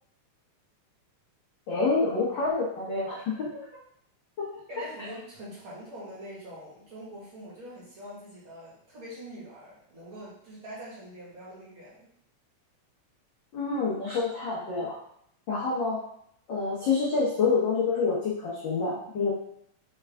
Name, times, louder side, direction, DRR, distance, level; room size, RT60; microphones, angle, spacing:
voice 1, 1.7-3.5 4.4-4.5 13.5-15.0 15.5-16.0 16.5-19.3, left 4 dB, 75° left, -6 dB, 1.0 m, -27 dB
voice 2, 3.5-3.8 4.7-12.1, equal, 50° right, -8 dB, 2.1 m, -44 dB
4.6 x 3.4 x 3.4 m, 0.69 s
omnidirectional pair, 3.3 m